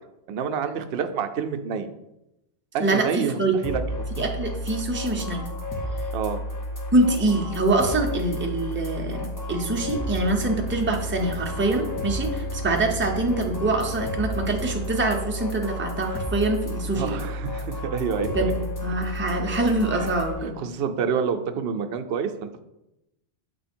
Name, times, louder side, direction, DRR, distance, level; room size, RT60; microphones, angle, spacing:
voice 1, 0.3-1.9 2.7-4.1 6.1-6.4 16.9-18.5 19.9-20.1 20.4-22.5, right 6 dB, 70° right, 7 dB, 0.8 m, -28 dB
voice 2, 2.8-3.5 4.2-5.4 6.9-17.2 18.3-20.5, right 2 dB, 15° right, 2 dB, 0.6 m, -25 dB
sound 1, 3.6-20.3, left 1 dB, 20° left, 0.9 m, -32 dB
Bowed string instrument, 9.6-15.5, right 4 dB, 85° left, 1.3 m, -40 dB
6.9 x 3.1 x 4.3 m, 0.89 s
omnidirectional pair, 1.1 m